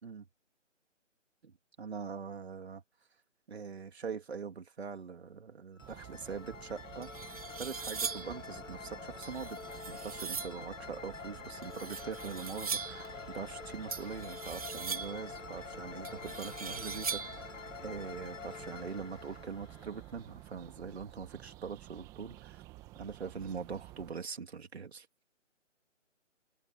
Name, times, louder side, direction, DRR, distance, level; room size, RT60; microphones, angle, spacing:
voice 1, 1.4-2.8 3.5-7.3 7.6-22.6 23.0-25.1, right 6 dB, 55° right, 3.5 m, -43 dB
sound 1, 5.8-20.6, left 5 dB, 80° left, 1.5 m, -47 dB
sound 2, 5.8-24.1, right 18 dB, 10° right, 1.6 m, -52 dB
sound 3, 6.5-6.6 7.0-8.4 9.2-10.6 11.6-13.1 13.9-15.3 16.0-17.5, right 6 dB, 30° right, 0.8 m, -40 dB
open air
figure-of-eight pair, 160°, 38 cm